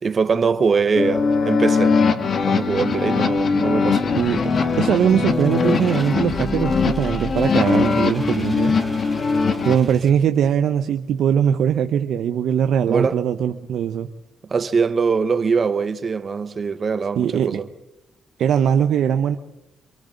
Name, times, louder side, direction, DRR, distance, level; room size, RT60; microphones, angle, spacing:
voice 1, 0.0-2.0 2.4-4.1 12.9-13.2 14.5-17.7, right 5 dB, 40° right, 1.2 m, -22 dB
sound 1, 1.0-9.8, left 4 dB, 50° left, 2.0 m, -20 dB
sound 2, 4.1-10.1, right 1 dB, ahead, 7.6 m, -36 dB
voice 2, 4.8-8.8 9.6-14.1 17.2-17.6 18.4-19.4, right 8 dB, 70° right, 0.8 m, -20 dB
28.0 x 24.0 x 3.9 m
cardioid pair, 90°, 0 cm